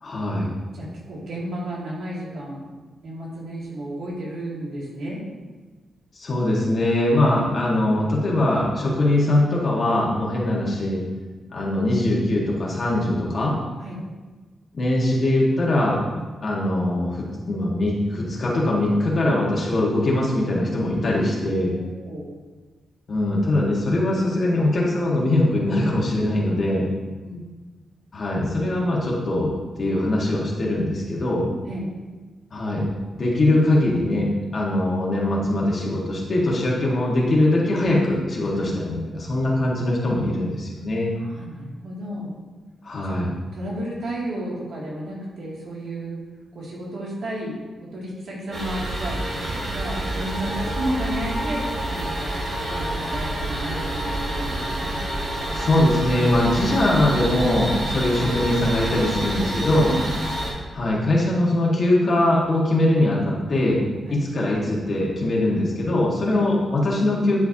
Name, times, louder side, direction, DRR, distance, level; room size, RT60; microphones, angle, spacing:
voice 1, 0.0-0.5 6.2-11.0 11.5-13.5 14.7-16.0 16.4-21.7 23.1-26.9 28.1-31.5 32.5-32.9 33.1-41.1 42.8-43.3 55.5-59.9 60.7-63.8 64.1-67.4, left 1 dB, 45° left, -4 dB, 1.8 m, -22 dB
voice 2, 0.7-2.6 3.0-5.2 13.8-14.0 21.6-22.3 27.2-27.4 31.6-31.9 38.5-38.7 41.2-42.3 43.0-43.2 43.5-46.2 46.5-47.6 47.9-49.2 49.7-52.4 52.7-55.0 59.9-60.0 64.1-64.2 66.3-66.4, right 1 dB, 75° right, -5 dB, 2.6 m, -32 dB
sound 1, 48.5-60.5, right 1 dB, 45° right, 2.5 m, -28 dB
11.0 x 5.6 x 2.9 m, 1.3 s
wide cardioid pair, 115°, 0 cm